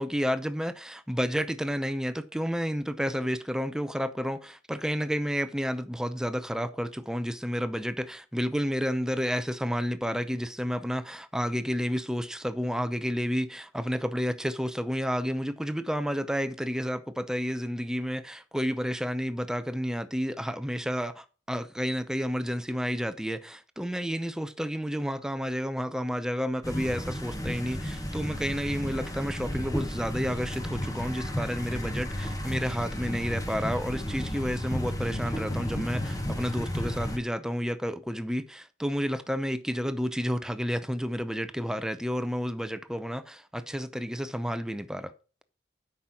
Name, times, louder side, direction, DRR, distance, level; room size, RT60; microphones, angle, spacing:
voice 1, 0.0-45.1, equal, 5° right, 0.6 m, -31 dB
sound 1, 26.6-37.2, equal, 20° left, 1.3 m, -33 dB
8.5 x 5.5 x 6.1 m
head